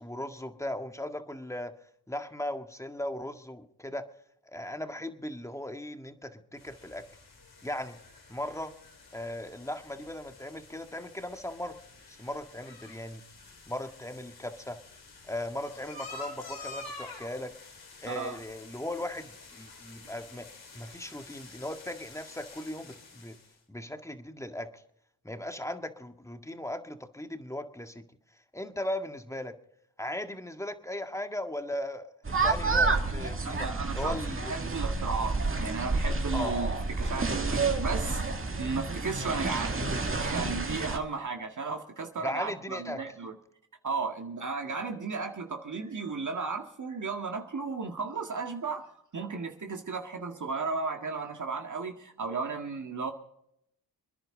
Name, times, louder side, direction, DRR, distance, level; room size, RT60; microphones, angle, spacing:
voice 1, 0.0-1.7 2.1-4.0 4.5-7.0 7.6-8.0 8.3-8.7 9.1-11.8 12.1-13.2 13.7-14.8 15.3-17.5 18.0-20.5 20.7-23.4 23.7-24.8 25.2-28.0 28.5-29.5 30.0-33.7 33.9-34.5 36.3-36.5 42.2-43.0, left 1 dB, 10° left, 6 dB, 1.8 m, -37 dB
sound 1, 6.6-23.5, left 3 dB, 75° left, 4.8 m, -49 dB
voice 2, 18.1-18.4 33.4-34.2 34.5-38.2 38.6-39.8 40.2-43.4 43.8-53.1, right 4 dB, 50° right, 4 dB, 1.9 m, -34 dB
sound 2, 32.3-41.0, right 3 dB, 35° right, 2.1 m, -29 dB
26.5 x 10.5 x 3.8 m, 0.73 s
cardioid pair, 60°, 38 cm